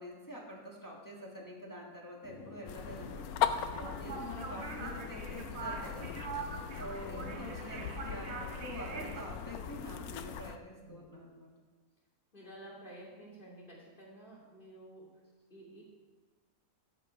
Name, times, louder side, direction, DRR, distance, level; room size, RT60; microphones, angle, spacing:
voice 1, 0.0-6.1 6.8-11.5, equal, 15° left, -3 dB, 1.7 m, -46 dB
sound 1, 2.2-10.4, left 3 dB, 65° left, 1.4 m, -50 dB
sound 2, 2.7-10.6, left 9 dB, 90° left, 1.1 m, -39 dB
sound 3, 3.7-9.2, right 4 dB, 55° right, 1.1 m, -43 dB
voice 2, 7.0-7.4 10.8-11.2 12.3-15.2 15.5-15.8, right 1 dB, 35° left, -4 dB, 2.7 m, -52 dB
13.5 x 5.3 x 5.5 m, 1.3 s
omnidirectional pair, 1.5 m